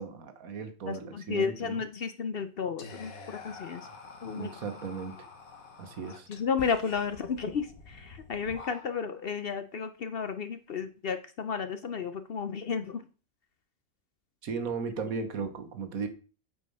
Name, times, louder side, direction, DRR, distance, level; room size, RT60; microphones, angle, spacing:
voice 1, 0.0-1.8 4.3-5.2 5.8-6.3 14.4-16.1, right 5 dB, 85° right, 1.5 m, -36 dB
voice 2, 0.9-3.9 4.2-4.5 6.3-13.1, left 6 dB, 55° left, 0.7 m, -33 dB
Whispering, 2.8-9.2, left 4 dB, 75° left, 1.6 m, -47 dB
8.4 x 4.8 x 5.4 m
omnidirectional pair, 1.4 m